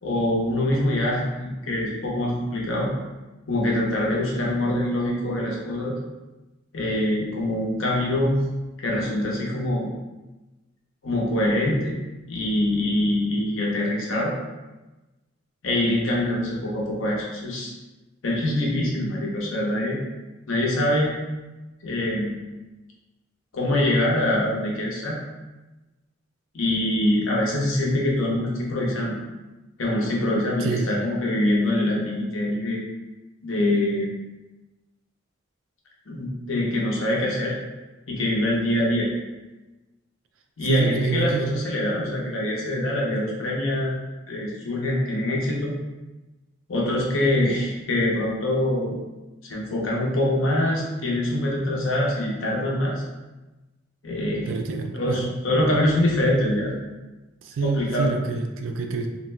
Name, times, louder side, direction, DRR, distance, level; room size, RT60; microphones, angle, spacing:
voice 1, 0.0-2.9 3.5-6.0 6.7-8.4 8.8-9.9 11.0-11.9 12.3-14.3 15.6-17.7 18.2-20.0 20.5-21.1 21.8-22.4 23.5-25.2 26.5-29.2 29.8-32.8 33.4-34.1 36.1-37.6 38.1-39.1 40.6-43.9 44.3-45.8 46.7-49.0 49.4-53.0 54.0-54.5 54.9-56.7 57.6-58.1, left 1 dB, 80° left, -3 dB, 0.7 m, -24 dB
voice 2, 30.6-31.0 40.6-41.5 54.5-55.3 57.4-59.1, right 4 dB, 75° right, 4 dB, 0.3 m, -27 dB
2.6 x 2.1 x 3.1 m, 1.1 s
head